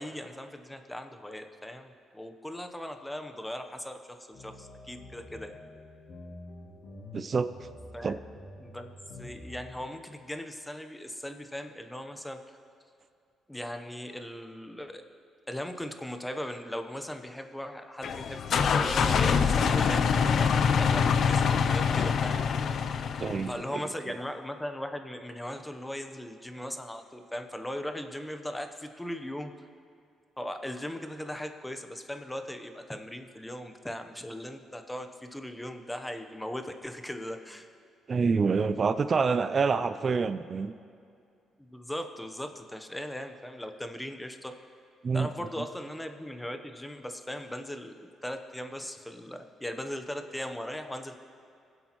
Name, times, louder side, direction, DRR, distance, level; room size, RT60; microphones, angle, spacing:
voice 1, 0.0-5.5 7.9-8.2 8.6-8.9 9.2-12.6 13.5-15.0 15.5-22.4 23.5-29.5 30.4-37.7 41.7-44.5 45.1-51.2, left 1 dB, 10° left, 6 dB, 0.8 m, -38 dB
sound 1, 4.3-9.7, left 1 dB, 80° left, 3.2 m, -47 dB
voice 2, 7.1-7.5 8.0-8.2 23.2-23.8 24.1-24.2 38.1-40.7 45.0-45.3, right 5 dB, 40° right, 12 dB, 0.3 m, -27 dB
sound 2, 18.0-23.6, left 6 dB, 60° left, 0.5 m, -25 dB
21.5 x 8.0 x 3.0 m, 2.4 s
cardioid pair, 90°, 0 cm